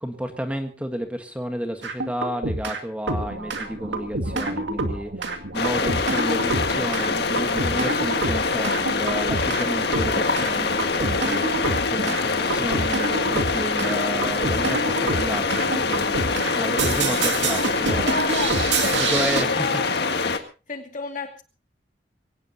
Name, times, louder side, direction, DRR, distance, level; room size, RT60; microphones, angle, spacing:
voice 1, 0.0-18.1 18.9-19.7, equal, 5° right, 6 dB, 1.5 m, -31 dB
sound 1, 1.8-2.8 3.1-19.4, right 3 dB, 90° right, 2.2 m, -28 dB
sound 2, 5.5-20.4, left 4 dB, 65° left, 1.8 m, -24 dB
voice 2, 18.0-20.0 20.7-21.4, left 3 dB, 45° left, 5 dB, 2.5 m, -31 dB
23.0 x 17.5 x 2.9 m, 0.33 s
head